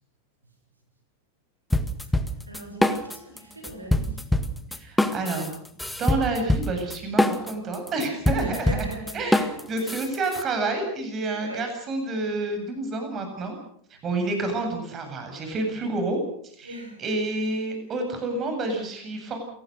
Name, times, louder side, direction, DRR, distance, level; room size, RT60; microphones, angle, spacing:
sound 1, 1.7-3.4 3.6-10.4, left 1 dB, 5° left, 1.8 m, -24 dB
voice 1, 2.5-4.3 8.4-9.3 9.8-10.0 11.3-11.7 16.6-17.0, right 1 dB, 80° right, 4 dB, 7.1 m, -39 dB
voice 2, 4.7-5.5 6.0-8.9 9.1-13.5 13.9-19.4, right 2 dB, 25° right, 5 dB, 7.8 m, -29 dB
28.0 x 19.0 x 6.7 m, 0.65 s
figure-of-eight pair, 90°, 0 cm